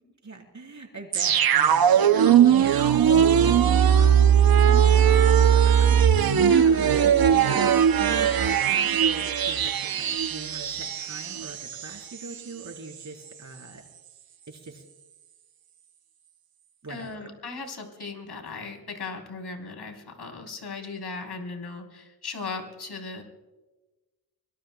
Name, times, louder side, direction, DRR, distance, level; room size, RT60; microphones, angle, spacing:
voice 1, 0.2-4.4 4.7-5.9 6.6-7.0 7.5-13.8 14.5-14.8 16.8-17.3, right 3 dB, 45° right, 1 dB, 4.1 m, -42 dB
sound 1, 1.1-11.9 12.3-12.4, right 8 dB, 60° right, 0.7 m, -19 dB
voice 2, 6.5-7.9 16.9-23.2, left 4 dB, 75° left, 2 dB, 3.8 m, -37 dB
25.5 x 21.0 x 2.3 m, 1.2 s
cardioid pair, 70°, 40 cm